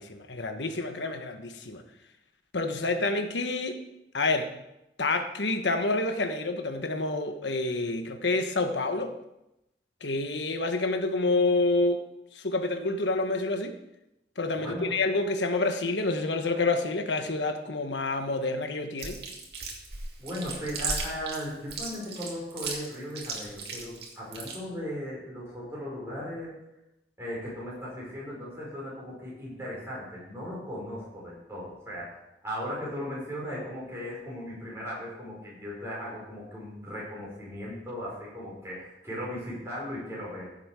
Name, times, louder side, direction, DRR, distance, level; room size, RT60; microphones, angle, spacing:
voice 1, 0.0-1.8 2.5-3.8 4.1-4.5 5.0-9.2 10.0-12.0 12.3-13.8 14.4-19.2, left 2 dB, 85° left, 7 dB, 1.2 m, -28 dB
voice 2, 14.6-14.9 20.2-26.5 27.2-32.1 32.4-40.5, equal, 15° right, -6 dB, 5.4 m, -37 dB
Chewing mastication, 19.0-24.6, right 4 dB, 65° right, 2.4 m, -35 dB
15.5 x 7.4 x 4.8 m, 0.91 s
head